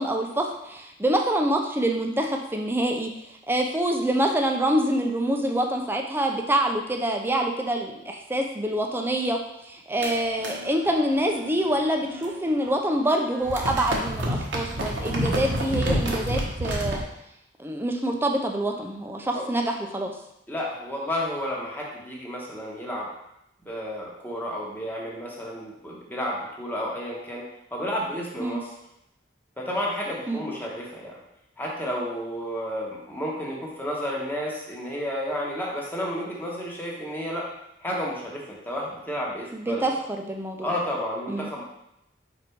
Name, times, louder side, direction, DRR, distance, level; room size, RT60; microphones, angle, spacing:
voice 1, 0.0-3.1 3.5-9.4 9.7-17.0 17.6-20.1 28.4-28.6 30.3-30.4 39.5-40.7 41.3-41.5, right 1 dB, 10° right, 2 dB, 0.6 m, -26 dB
sound 1, 10.0-12.7 12.9-17.0, equal, 70° right, 1.1 m, -30 dB
voice 2, 20.5-23.1 23.6-28.7 29.6-31.2 31.6-37.5 37.8-39.9 40.6-41.6, equal, 10° left, -3 dB, 1.2 m, -31 dB
5.0 x 4.1 x 4.6 m, 0.83 s
head